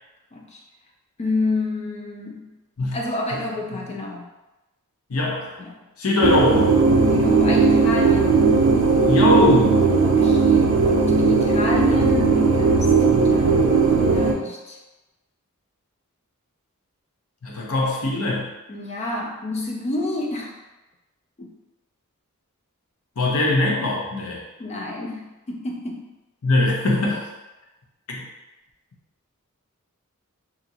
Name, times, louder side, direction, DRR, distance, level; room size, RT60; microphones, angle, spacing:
voice 1, 1.2-2.5 2.9-4.3 5.6-5.8 7.1-8.5 10.0-14.8 18.7-20.6 21.4-21.5 24.6-26.1, left 2 dB, 30° left, -1 dB, 0.3 m, -29 dB
voice 2, 5.1-5.5 6.0-6.7 9.0-9.8 17.4-18.5 23.2-24.4 26.4-27.3 28.1-28.2, left 2 dB, 75° left, -2 dB, 0.7 m, -21 dB
sound 1, 6.2-14.3, right 4 dB, 75° right, 0.4 m, -17 dB
2.8 x 2.5 x 2.7 m, 1.1 s
head